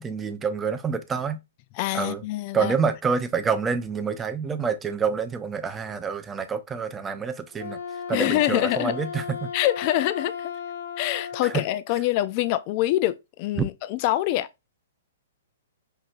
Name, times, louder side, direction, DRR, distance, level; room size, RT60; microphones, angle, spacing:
voice 1, 0.0-1.4 1.9-2.2 2.5-7.8 8.1-9.5 11.4-11.6 13.6-13.7, right 6 dB, 15° right, 0.5 m, -27 dB
voice 2, 1.8-2.7 8.1-9.0 9.5-10.5 11.0-14.5, left 14 dB, 40° left, 0.4 m, -25 dB
Wind instrument woodwind instrument, 7.5-11.7, left 6 dB, 60° left, 0.7 m, -35 dB
5.5 x 2.8 x 2.4 m
figure-of-eight pair, 115°, 0 cm